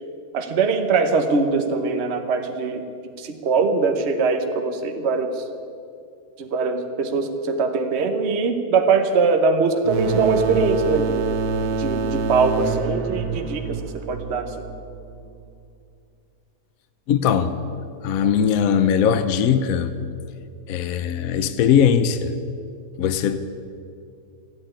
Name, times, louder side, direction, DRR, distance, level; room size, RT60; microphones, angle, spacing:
voice 1, 0.3-2.8 3.2-5.5 6.4-11.3 11.8-13.8 14.1-14.6, right 4 dB, 45° right, 1.2 m, -22 dB
sound 1, 9.8-15.3, right 4 dB, 70° right, 1.4 m, -26 dB
voice 2, 17.1-17.6 18.0-19.9 20.7-22.3 23.0-23.4, left 8 dB, 65° left, 1.0 m, -20 dB
14.0 x 8.9 x 10.0 m
omnidirectional pair, 1.8 m